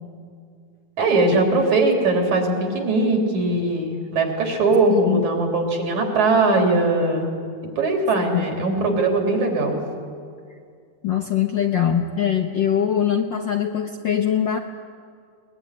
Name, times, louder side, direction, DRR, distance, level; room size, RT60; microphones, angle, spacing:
voice 1, 1.0-7.3 7.8-9.8, right 2 dB, 75° right, 2 dB, 4.6 m, -20 dB
voice 2, 4.9-5.3 8.3-8.5 11.0-14.6, left 9 dB, 65° left, 4 dB, 1.1 m, -22 dB
21.5 x 20.5 x 10.0 m, 2.2 s
omnidirectional pair, 3.4 m